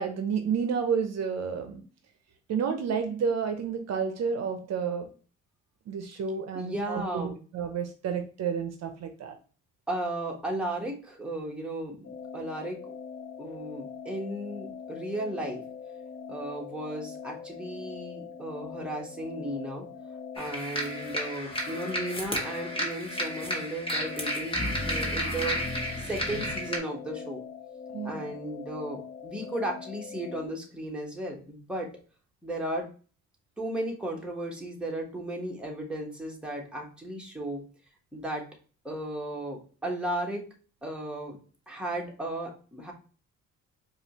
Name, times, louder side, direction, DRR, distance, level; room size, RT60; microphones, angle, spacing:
voice 1, 0.0-1.8 2.5-5.1 5.9-7.2 7.5-9.4 27.9-28.2, right 6 dB, 60° right, 7 dB, 0.6 m, -30 dB
voice 2, 6.5-7.4 9.9-12.9 13.4-15.6 16.3-19.9 20.4-25.6 26.0-27.4 28.0-31.9 32.4-32.9 33.6-37.6 38.1-38.4 38.8-40.4 40.8-41.4 41.7-42.9, right 1 dB, 5° right, -1 dB, 1.2 m, -35 dB
sound 1, 12.0-30.5, left 6 dB, 55° left, 1.2 m, -42 dB
sound 2, 20.4-26.8, equal, 20° left, 1.3 m, -32 dB
4.8 x 2.4 x 2.9 m, 0.39 s
cardioid pair, 90°, 30 cm